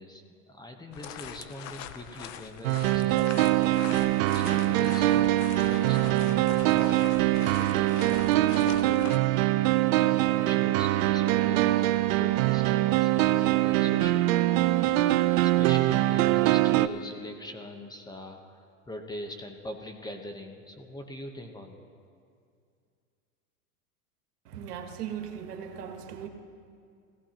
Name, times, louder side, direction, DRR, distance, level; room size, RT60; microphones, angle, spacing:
voice 1, 0.0-4.1 4.3-6.9 7.4-9.2 9.9-11.8 12.2-21.9, left 1 dB, 10° left, 4 dB, 0.9 m, -43 dB
sound 1, 0.9-9.2, left 10 dB, 40° left, 0.6 m, -43 dB
sound 2, 2.6-16.9, right 16 dB, 60° right, 0.6 m, -23 dB
voice 2, 24.4-26.3, right 8 dB, 85° right, 5 dB, 1.5 m, -38 dB
18.0 x 16.0 x 2.9 m, 2.3 s
hypercardioid pair, 120°, 45 cm